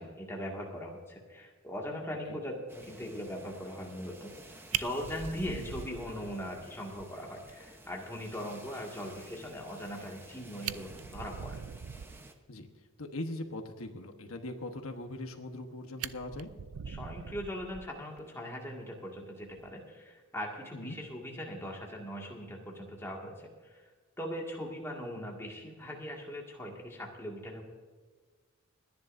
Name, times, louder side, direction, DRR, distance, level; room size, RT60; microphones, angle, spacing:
voice 1, 0.0-11.6 16.9-23.9 24.2-27.6, equal, 10° left, -2 dB, 2.0 m, -40 dB
sound 1, 2.7-12.3, right 1 dB, 10° right, 0.9 m, -52 dB
Fire, 4.3-4.4 4.7-6.6 7.0-7.1 7.5-7.6 7.9-8.0 10.2-10.3 10.5-12.3 15.1-15.6 16.0-18.2 19.5-19.7, right 9 dB, 85° right, 0.5 m, -41 dB
voice 2, 13.0-16.5 20.7-21.0, left 1 dB, 75° left, 5 dB, 1.2 m, -40 dB
30.0 x 10.5 x 2.7 m, 1.5 s
head